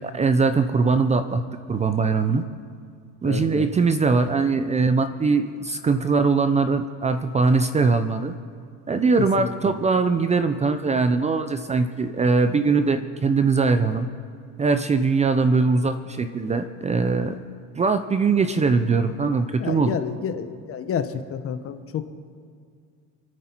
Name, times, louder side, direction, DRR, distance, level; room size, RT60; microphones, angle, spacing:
voice 1, 0.0-1.4 1.7-2.4 3.2-8.3 8.9-14.1 14.6-17.4 17.8-20.0, right 4 dB, 20° right, 9 dB, 0.6 m, -21 dB
voice 2, 3.2-3.7 9.2-9.7 19.6-22.1, left 7 dB, 40° left, 10 dB, 1.0 m, -30 dB
28.0 x 9.4 x 4.5 m, 2.2 s
cardioid pair, 135°, 36 cm